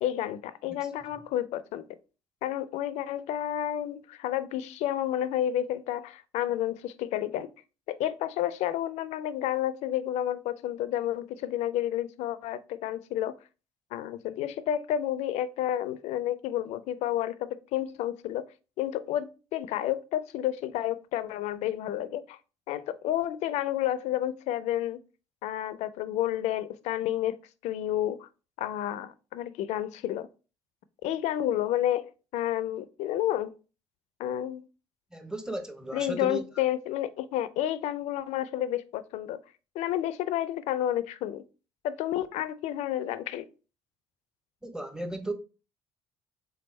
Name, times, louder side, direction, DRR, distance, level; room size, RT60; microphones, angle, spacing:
voice 1, 0.0-1.8 2.4-7.5 7.9-13.3 13.9-18.4 18.8-22.4 22.7-25.0 25.4-27.4 27.6-28.3 28.6-30.3 31.0-33.6 34.2-34.7 35.9-39.4 39.8-41.4 41.8-43.5, left 12 dB, 65° left, 0.4 m, -30 dB
voice 2, 35.1-36.4 44.6-45.3, right 1 dB, 5° right, 0.8 m, -35 dB
3.7 x 3.4 x 3.1 m
hypercardioid pair, 55°, 12 cm